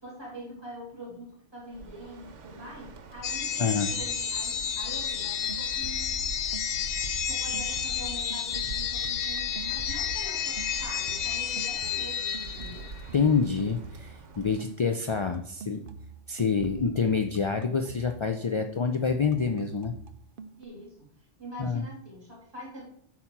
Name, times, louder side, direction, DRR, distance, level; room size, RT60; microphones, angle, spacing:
voice 1, 0.0-6.2 7.3-12.9 20.6-21.1 21.4-22.8, right 1 dB, 20° right, -4 dB, 3.9 m, -44 dB
Bird, 1.6-14.7, right 3 dB, 90° right, 1.3 m, -44 dB
sound 1, 3.2-13.1, left 8 dB, 70° left, 1.0 m, -31 dB
voice 2, 3.6-3.9 13.1-15.8 16.3-19.9 21.6-21.8, left 5 dB, 50° left, 5 dB, 0.3 m, -27 dB
sound 2, 5.5-6.3 6.5-10.2 10.6-18.3 18.6-20.7, right 5 dB, 55° right, 0.7 m, -45 dB
8.3 x 4.4 x 5.9 m, 0.64 s
omnidirectional pair, 1.2 m